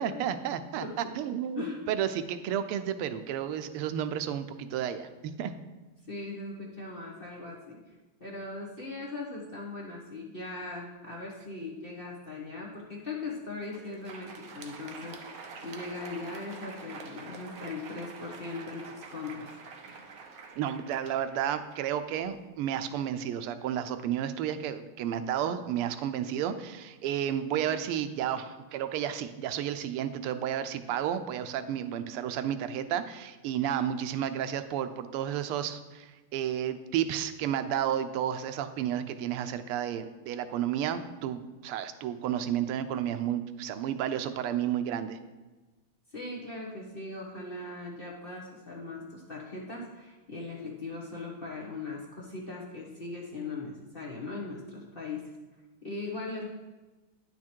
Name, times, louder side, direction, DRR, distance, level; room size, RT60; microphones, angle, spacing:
voice 1, 0.0-5.1 5.4-5.5 20.6-45.2, right 10 dB, 90° right, 10 dB, 1.5 m, -32 dB
voice 2, 6.1-7.8 8.2-19.5 46.1-55.2 55.8-56.4, left 3 dB, 35° left, -3 dB, 1.0 m, -39 dB
Crowd, 13.5-22.5, right 4 dB, 60° right, 1.0 m, -46 dB
10.0 x 6.1 x 4.4 m, 1.2 s
omnidirectional pair, 2.4 m